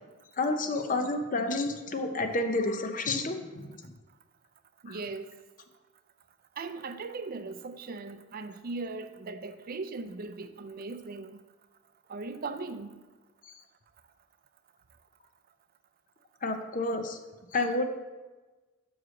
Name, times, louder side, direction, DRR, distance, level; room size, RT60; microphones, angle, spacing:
voice 1, 0.4-3.9 4.9-5.0 13.5-13.6 16.4-17.2 17.5-17.8, left 2 dB, 40° left, 7 dB, 0.6 m, -30 dB
voice 2, 4.8-5.3 6.6-11.4 12.1-12.9, right 3 dB, 45° right, 10 dB, 0.5 m, -38 dB
6.3 x 4.7 x 6.2 m, 1.2 s
head